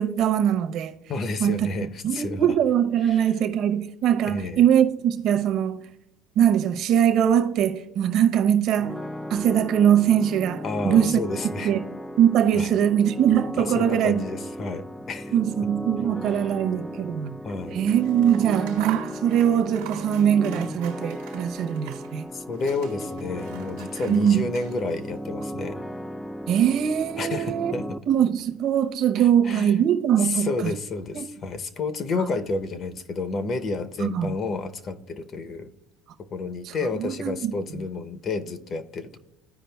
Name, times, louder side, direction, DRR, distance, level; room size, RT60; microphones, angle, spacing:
voice 1, 0.0-1.0 1.4-1.7 2.0-5.8 6.4-9.0 9.3-11.2 11.6-11.8 12.2-14.2 15.3-17.3 17.7-22.3 24.1-24.5 26.5-27.7 28.1-30.5 31.1-31.3 34.0-34.3 36.7-37.5, right 9 dB, 55° right, 0.7 m, -22 dB
voice 2, 1.1-2.6 3.0-3.3 4.2-4.6 10.6-11.7 12.5-12.7 13.6-15.3 17.4-17.8 22.3-25.8 27.2-27.9 29.2-29.8 30.2-35.7 36.2-39.2, left 3 dB, 40° left, 0.6 m, -30 dB
sound 1, 8.8-28.0, equal, 5° left, 0.3 m, -36 dB
Scissors, 17.7-22.2 22.5-25.1, right 12 dB, 85° right, 1.0 m, -42 dB
14.5 x 5.0 x 2.2 m
supercardioid pair, 120°, 0 cm